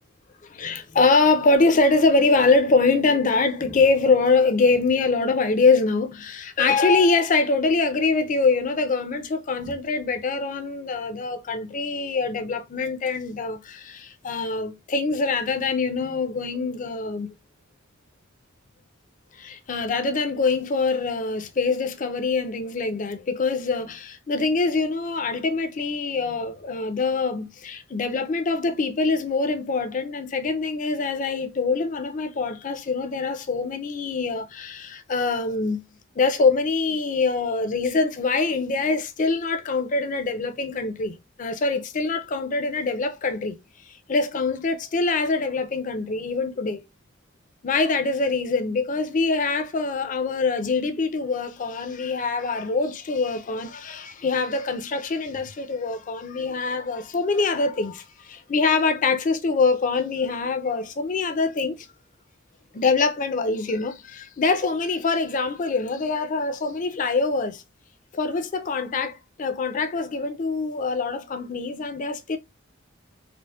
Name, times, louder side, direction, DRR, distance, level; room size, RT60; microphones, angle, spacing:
voice 1, 0.5-17.3 19.4-35.8 36.2-43.6 44.1-46.8 47.6-61.9 62.7-67.6 68.1-72.4, left 3 dB, 40° left, 0.4 m, -24 dB
4.3 x 2.1 x 2.3 m
head